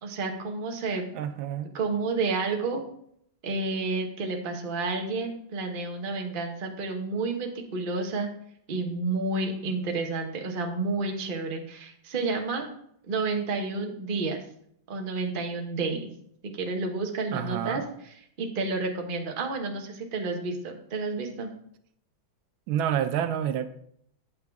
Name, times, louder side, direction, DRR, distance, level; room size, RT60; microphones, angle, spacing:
voice 1, 0.0-1.0 1.7-2.9 3.4-8.3 8.7-12.7 13.1-14.4 14.9-16.1 16.5-17.8 18.4-21.5, right 3 dB, 35° right, 3 dB, 0.9 m, -30 dB
voice 2, 1.1-1.7 17.3-17.9 22.7-23.7, right 10 dB, 85° right, 11 dB, 1.4 m, -28 dB
8.5 x 6.9 x 3.5 m, 0.71 s
omnidirectional pair, 2.1 m